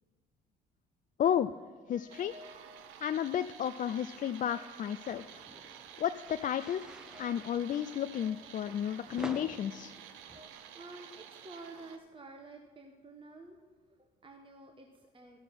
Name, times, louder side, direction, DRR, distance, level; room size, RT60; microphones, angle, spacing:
voice 1, 1.2-1.5 1.9-2.3 3.0-5.2 6.0-9.9, left 9 dB, 40° left, 11 dB, 0.4 m, -32 dB
sound 1, 1.9-10.5, equal, 40° right, 1.8 m, -59 dB
sound 2, 2.1-12.0, right 9 dB, 70° right, 0.8 m, -51 dB
sound 3, 5.1-10.4, equal, 5° right, 0.9 m, -49 dB
voice 2, 10.2-13.6 13.9-15.4, right 3 dB, 25° right, 3 dB, 1.2 m, -51 dB
13.0 x 6.7 x 5.8 m, 1.4 s
hypercardioid pair, 50°, 21 cm